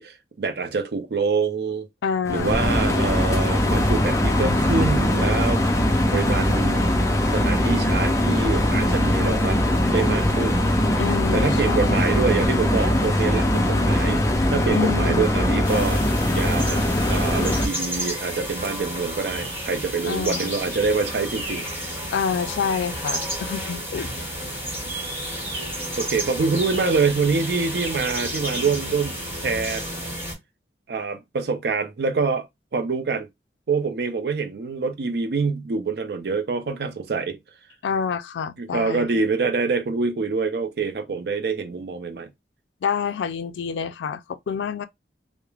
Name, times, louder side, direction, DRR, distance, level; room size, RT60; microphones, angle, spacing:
voice 1, 0.0-1.9 2.3-5.6 6.1-6.8 7.3-10.7 11.3-16.0 16.3-21.6 26.0-29.8 30.9-32.5 32.7-33.3 33.7-37.4 38.6-42.3, right 4 dB, 60° right, 0.5 m, -25 dB
voice 2, 2.0-2.7 11.0-12.3 14.7-15.3 20.0-20.5 22.1-24.1 37.8-39.1 42.8-44.9, left 6 dB, 90° left, 0.3 m, -28 dB
sound 1, 2.3-17.7, left 1 dB, 15° left, 0.4 m, -21 dB
sound 2, 15.6-30.3, equal, 15° right, 1.3 m, -31 dB
3.1 x 2.0 x 2.3 m
head